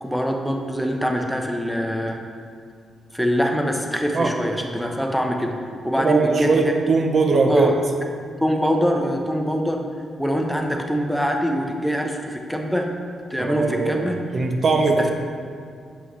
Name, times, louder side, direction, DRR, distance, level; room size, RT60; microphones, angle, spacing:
voice 1, 0.0-2.2 3.1-5.5 5.8-6.6 7.5-7.7 8.4-9.8 10.2-12.9 13.3-14.2, equal, ahead, 2 dB, 0.8 m, -23 dB
voice 2, 6.0-7.8 13.4-14.1 14.3-15.1, right 4 dB, 55° right, 3 dB, 0.7 m, -20 dB
8.0 x 5.5 x 3.1 m, 2.2 s
supercardioid pair, 60°, 0 cm